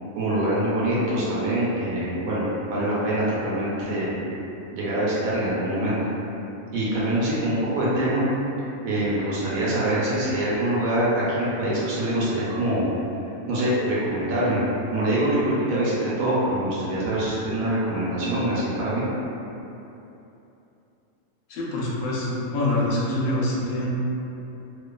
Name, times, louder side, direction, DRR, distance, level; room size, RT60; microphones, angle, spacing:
voice 1, 0.2-2.4 2.7-4.2 4.7-6.0 6.7-8.3 8.8-12.9 13.5-14.6 14.9-19.0, right 1 dB, 85° right, -8 dB, 1.1 m, -24 dB
voice 2, 21.5-23.9, left 1 dB, 90° left, -6 dB, 1.0 m, -25 dB
2.6 x 2.3 x 2.2 m, 2.9 s
omnidirectional pair, 1.4 m